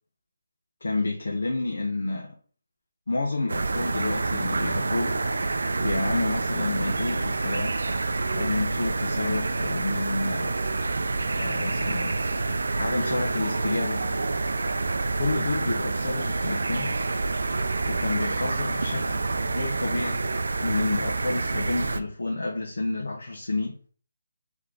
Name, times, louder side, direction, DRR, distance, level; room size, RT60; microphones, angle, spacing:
voice 1, 0.8-2.3 3.1-5.2 5.8-7.8 8.3-10.6 11.4-12.1 12.5-14.0 15.2-16.9 17.9-20.2 20.6-23.8, left 2 dB, 85° left, -1 dB, 0.9 m, -29 dB
sound 1, 3.5-22.0, right 3 dB, 70° right, 0.4 m, -28 dB
3.6 x 3.1 x 3.7 m, 0.42 s
hypercardioid pair, 180°, 0 cm